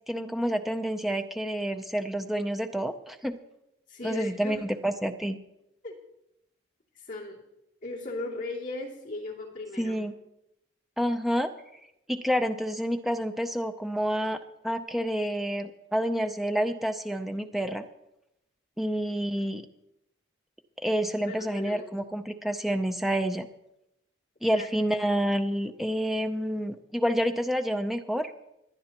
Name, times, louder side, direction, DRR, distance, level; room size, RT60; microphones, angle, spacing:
voice 1, 0.1-3.4 4.0-5.4 9.8-10.1 11.0-11.5 12.1-14.4 14.6-17.8 18.8-19.6 20.8-23.5 24.4-28.3, equal, ahead, 7 dB, 0.5 m, -28 dB
voice 2, 3.9-4.6 5.8-6.0 6.9-7.4 7.8-10.0 19.3-19.5 21.3-22.0 24.4-24.7, left 2 dB, 45° left, -4 dB, 2.7 m, -37 dB
20.0 x 10.5 x 3.0 m, 0.86 s
head